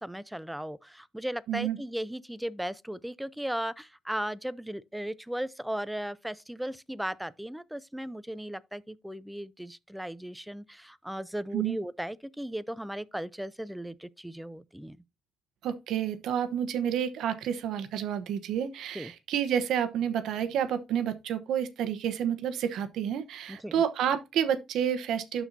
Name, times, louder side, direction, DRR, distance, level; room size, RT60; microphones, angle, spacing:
voice 1, 0.0-15.0 18.9-19.1 23.5-23.8, right 1 dB, 5° right, 0.5 m, -36 dB
voice 2, 15.6-25.4, right 9 dB, 80° right, 0.9 m, -29 dB
12.0 x 4.3 x 2.7 m
cardioid pair, 90°, 0 cm